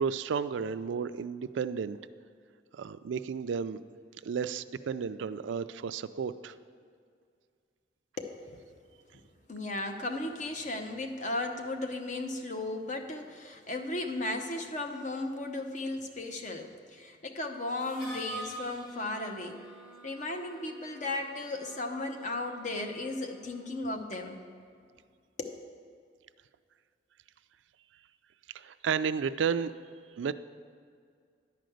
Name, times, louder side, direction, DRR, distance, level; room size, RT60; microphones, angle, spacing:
voice 1, 0.0-2.0 2.7-3.8 4.2-6.5 28.5-29.7 30.2-30.3, right 6 dB, 90° right, 13 dB, 0.4 m, -32 dB
voice 2, 8.2-8.7 9.5-19.6 20.0-24.4 25.4-25.5, left 2 dB, 40° left, 5 dB, 0.8 m, -35 dB
Harmonica, 17.8-23.5, right 1 dB, 25° left, 2.8 m, -47 dB
10.5 x 5.1 x 7.8 m, 2.2 s
head